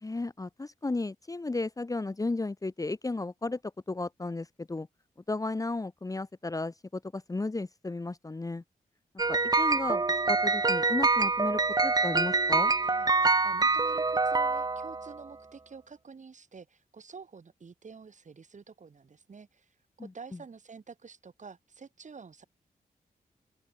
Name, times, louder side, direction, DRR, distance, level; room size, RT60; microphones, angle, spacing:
voice 1, 0.0-3.6 3.9-4.9 5.3-8.6 9.3-12.7 20.0-20.1, left 2 dB, 20° left, 1.0 m, -34 dB
sound 1, 9.2-15.2, right 3 dB, 25° right, 0.8 m, -26 dB
voice 2, 12.8-22.4, right 5 dB, 50° right, 5.2 m, -49 dB
open air
cardioid pair, 85°, 15 cm